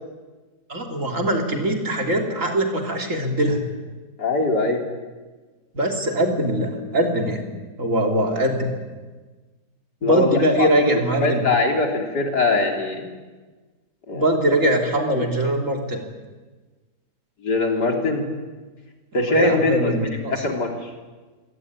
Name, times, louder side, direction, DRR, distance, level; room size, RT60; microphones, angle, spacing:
voice 1, 0.7-3.6 5.7-7.4 7.8-8.7 10.0-11.4 14.1-16.0 19.1-20.4, right 1 dB, 50° right, 2 dB, 3.7 m, -22 dB
voice 2, 4.2-4.8 10.0-10.7 11.0-13.1 14.1-14.3 15.1-15.3 17.4-18.3 19.1-20.9, left 2 dB, 80° left, 2 dB, 4.1 m, -22 dB
27.0 x 17.5 x 9.8 m, 1.3 s
omnidirectional pair, 1.8 m